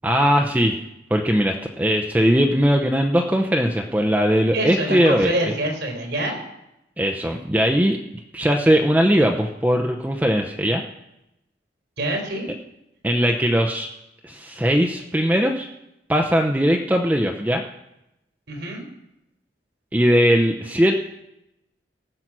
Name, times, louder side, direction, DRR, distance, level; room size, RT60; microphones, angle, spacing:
voice 1, 0.0-0.8 1.1-5.6 7.0-8.0 8.3-10.8 13.0-13.9 14.2-15.7 16.1-17.6 19.9-21.0, equal, 10° right, 2 dB, 0.7 m, -19 dB
voice 2, 4.5-6.4 12.0-12.5 18.5-18.8, right 1 dB, 85° right, 1 dB, 3.8 m, -26 dB
18.0 x 7.6 x 6.1 m, 0.86 s
head